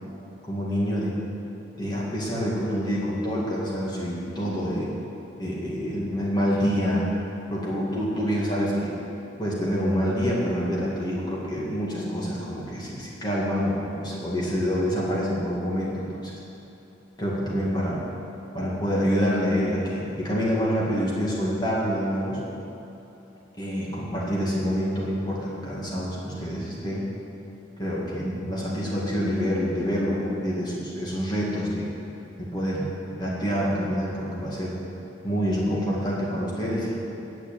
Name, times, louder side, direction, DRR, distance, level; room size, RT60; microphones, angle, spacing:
voice 1, 0.5-1.2 1.7-4.9 5.4-7.0 7.5-9.0 9.4-16.4 17.2-18.0 18.5-22.4 23.6-27.1 27.8-31.9 32.4-32.9 33.2-34.8 35.2-37.0, equal, 25° left, -6 dB, 2.0 m, -27 dB
9.8 x 7.1 x 8.8 m, 2.9 s
head